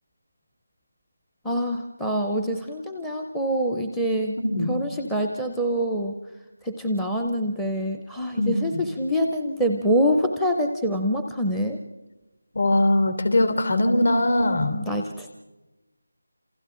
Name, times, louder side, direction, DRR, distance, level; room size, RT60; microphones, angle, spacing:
voice 1, 1.4-4.4 4.7-6.2 6.6-11.8 14.9-15.3, equal, ahead, 4 dB, 0.6 m, -25 dB
voice 2, 4.4-4.7 8.4-8.8 12.5-14.8, left 1 dB, 65° left, 8 dB, 3.2 m, -21 dB
28.5 x 28.0 x 3.8 m, 1.1 s
figure-of-eight pair, 175°, 0 cm